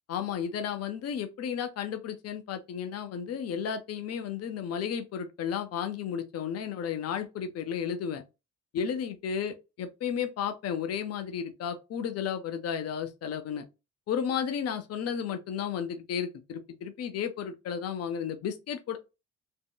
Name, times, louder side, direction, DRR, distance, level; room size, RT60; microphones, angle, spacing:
voice 1, 0.1-8.2 8.7-13.6 14.1-19.0, left 8 dB, 55° left, 0.6 m, -33 dB
3.5 x 2.1 x 2.3 m
cardioid pair, 90°, 30 cm